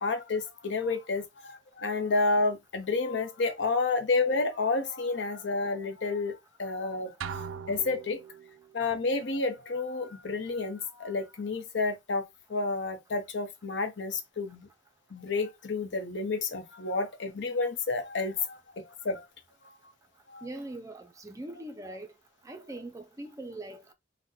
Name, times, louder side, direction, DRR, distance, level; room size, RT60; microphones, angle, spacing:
voice 1, 0.0-8.2 8.7-12.2 12.5-14.7 15.1-19.3 20.3-20.5, left 3 dB, 65° left, 0.7 m, -30 dB
sound 1, 7.2-8.7, right 6 dB, 90° right, 0.3 m, -39 dB
voice 2, 20.4-22.1 22.4-23.9, right 1 dB, 15° right, 0.4 m, -41 dB
3.9 x 2.1 x 2.7 m
head